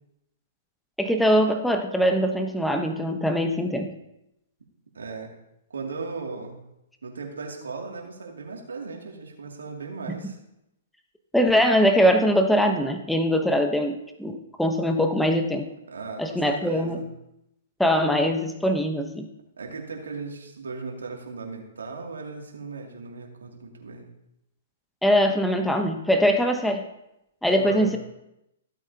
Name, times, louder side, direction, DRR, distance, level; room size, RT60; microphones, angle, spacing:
voice 1, 1.0-3.9 11.3-15.6 16.2-17.0 17.8-19.3 25.0-26.8 27.4-28.0, equal, ahead, 5 dB, 0.9 m, -22 dB
voice 2, 4.9-5.3 5.7-6.6 7.0-10.4 15.9-17.1 19.6-24.1 27.6-27.9, right 4 dB, 85° right, 0 dB, 2.4 m, -37 dB
15.5 x 8.2 x 2.8 m, 0.86 s
hypercardioid pair, 135°, 0 cm